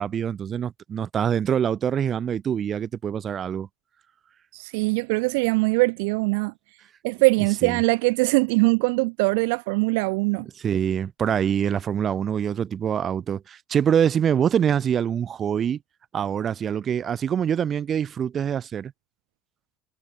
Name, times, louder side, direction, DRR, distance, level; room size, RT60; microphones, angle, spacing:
voice 1, 0.0-3.7 7.6-7.8 10.6-15.8 16.1-18.9, right 8 dB, 40° right, 3.3 m, -25 dB
voice 2, 4.5-6.5 7.0-10.5, right 28 dB, 75° right, 1.1 m, -22 dB
hypercardioid pair, 80°, 0 cm